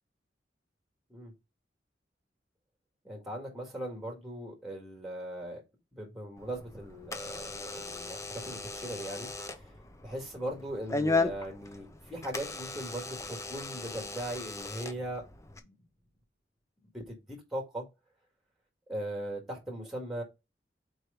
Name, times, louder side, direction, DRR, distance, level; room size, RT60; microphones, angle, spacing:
voice 1, 3.0-5.6 5.9-9.7 10.0-15.2 15.6-15.8 16.9-17.9 18.9-20.2, right 1 dB, ahead, 1.9 m, -39 dB
Door / Alarm, 6.4-15.6, left 3 dB, 15° left, 0.6 m, -36 dB
4.7 x 4.5 x 5.0 m
head